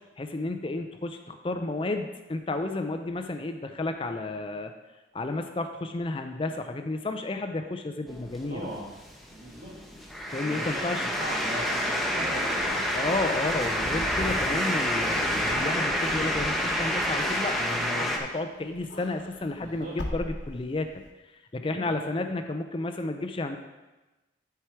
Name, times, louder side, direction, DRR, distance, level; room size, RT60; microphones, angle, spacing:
voice 1, 0.2-4.7 5.1-8.7 10.3-11.1 12.9-20.9 21.5-23.6, left 2 dB, 30° left, 7 dB, 0.5 m, -32 dB
sound 1, 8.1-18.2, equal, ahead, 0.8 m, -28 dB
voice 2, 8.5-8.9 9.3-9.8 10.4-13.0 19.5-20.0 21.7-22.0, equal, 45° right, -6 dB, 1.4 m, -39 dB
Wind / Car, 12.5-18.3 18.6-21.1, left 1 dB, 85° left, 1.0 m, -41 dB
11.5 x 4.8 x 4.5 m, 1.1 s
head